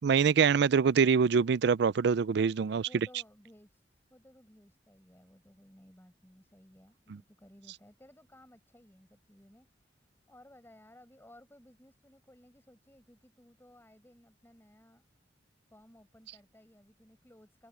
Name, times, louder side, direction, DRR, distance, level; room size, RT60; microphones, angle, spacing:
voice 1, 0.0-2.9, right 6 dB, 65° right, 0.4 m, -24 dB
voice 2, 2.9-10.0 10.3-15.1 15.7-17.7, left 1 dB, 15° left, 7.1 m, -58 dB
head